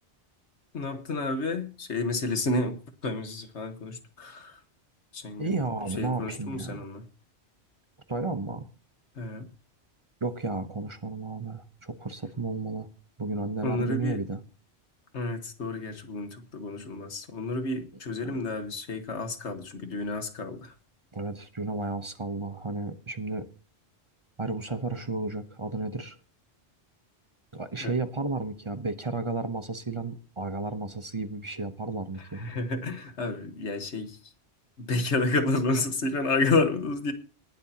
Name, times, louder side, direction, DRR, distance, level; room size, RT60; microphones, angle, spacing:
voice 1, 0.7-2.8 3.0-4.6 5.1-5.6 6.0-7.0 9.2-9.5 13.6-14.2 15.1-20.7 27.8-28.0 32.2-34.3 34.8-37.1, left 3 dB, 90° left, 1.7 m, -30 dB
voice 2, 5.4-6.8 8.1-8.7 10.2-12.9 13.2-14.4 18.2-18.4 21.1-23.5 24.4-26.2 27.5-32.4, right 3 dB, 30° right, 0.9 m, -33 dB
19.0 x 11.0 x 2.9 m
omnidirectional pair, 1.1 m